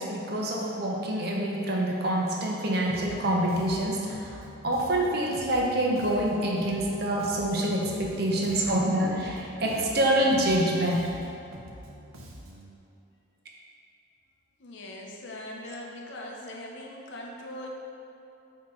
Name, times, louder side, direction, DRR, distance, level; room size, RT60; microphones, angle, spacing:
voice 1, 0.0-11.1, right 1 dB, 50° right, -2 dB, 0.7 m, -26 dB
Bass guitar, 2.9-12.8, right 1 dB, 85° right, 0.7 m, -46 dB
voice 2, 14.6-17.7, left 1 dB, 60° left, -1 dB, 0.7 m, -40 dB
8.6 x 2.9 x 3.7 m, 2.8 s
head